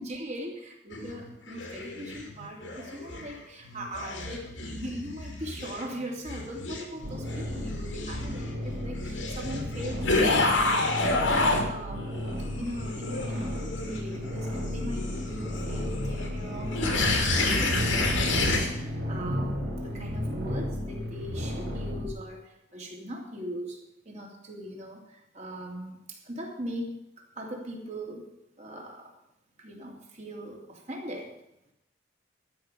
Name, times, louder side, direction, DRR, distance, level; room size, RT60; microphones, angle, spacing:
voice 1, 0.0-23.8 24.0-28.3 28.6-29.1 29.6-31.3, equal, 35° right, 0 dB, 3.1 m, -40 dB
sound 1, 0.9-3.3 3.6-11.7 12.0-18.7, left 2 dB, 80° left, 2.8 m, -30 dB
sound 2, 7.0-22.1, left 1 dB, 85° right, 4.4 m, -34 dB
13.0 x 6.4 x 9.2 m, 0.84 s
head